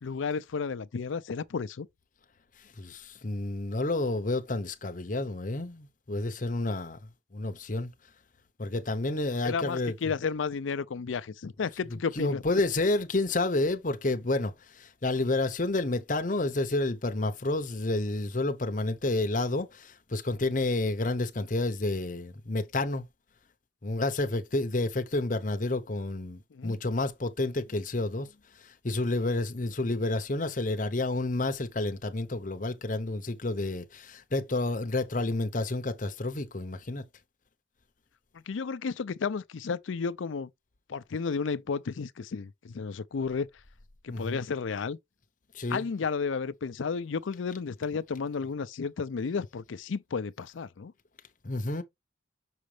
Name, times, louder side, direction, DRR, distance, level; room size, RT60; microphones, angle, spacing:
voice 1, 0.0-1.9 9.4-12.4 26.5-26.8 38.5-40.5 40.9-43.5 44.0-45.0 45.7-50.9, left 5 dB, 85° left, 0.5 m, -32 dB
voice 2, 2.8-7.0 7.3-7.9 8.6-9.9 12.2-23.1 23.8-28.3 28.6-37.0 44.1-44.4 45.5-45.8 51.4-51.8, left 2 dB, 40° left, 0.8 m, -30 dB
6.4 x 5.0 x 3.3 m
head